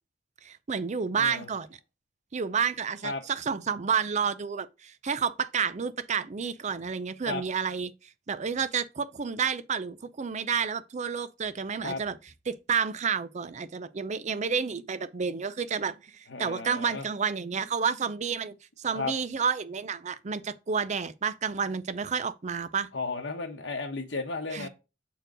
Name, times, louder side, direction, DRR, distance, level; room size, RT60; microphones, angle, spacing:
voice 1, 0.4-1.7 2.3-7.9 8.3-12.2 12.5-22.9 24.5-24.7, right 6 dB, 40° right, 0.5 m, -30 dB
voice 2, 1.1-1.5 3.0-3.2 7.3-7.4 11.8-12.0 16.3-17.1 18.9-19.1 22.9-24.7, left 3 dB, 70° left, 1.1 m, -34 dB
6.4 x 4.5 x 3.7 m
head